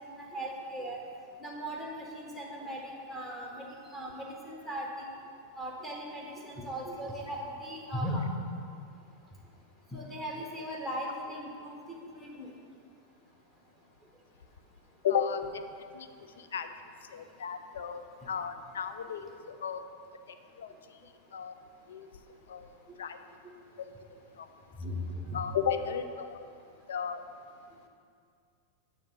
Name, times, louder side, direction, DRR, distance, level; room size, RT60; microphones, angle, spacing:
voice 1, 0.1-1.0 1.4-3.7 3.9-5.1 5.6-8.3 9.9-11.8 12.1-12.5 24.8-25.4, equal, 5° left, -2 dB, 1.2 m, -38 dB
voice 2, 15.0-15.6 15.9-16.1 16.4-16.7 17.1-19.3 19.6-19.8 20.3-20.7 21.3-21.5 21.9-22.1 22.5-22.7 23.0-23.2 23.8-23.9 24.4-24.5 25.3-26.4 26.9-27.2, left 7 dB, 65° left, 9 dB, 0.4 m, -34 dB
8.6 x 3.4 x 6.4 m, 2.3 s
figure-of-eight pair, 90°, 0 cm